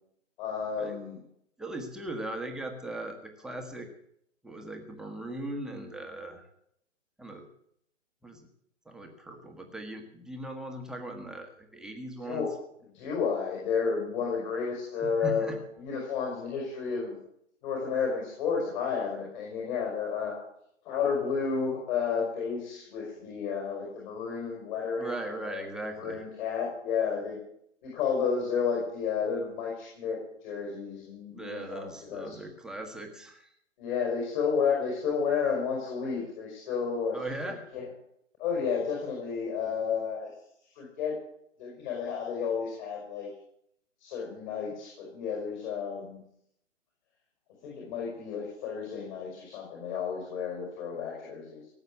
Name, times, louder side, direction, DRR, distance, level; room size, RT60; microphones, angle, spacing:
voice 1, 0.4-1.2 12.2-12.5 12.9-17.2 17.6-20.3 20.8-25.6 25.9-27.4 27.8-32.4 33.8-37.2 37.4-37.9 38.4-40.3 40.7-41.2 41.6-43.3 44.0-46.2 47.6-51.7, left 6 dB, 35° left, -2 dB, 5.4 m, -31 dB
voice 2, 1.6-3.9 4.4-6.4 7.2-7.5 8.2-8.4 8.8-12.5 15.0-15.6 25.0-26.2 31.3-33.5 37.1-37.6, right 2 dB, ahead, 3 dB, 1.5 m, -39 dB
17.5 x 8.1 x 8.4 m, 0.72 s
hypercardioid pair, 140°, 38 cm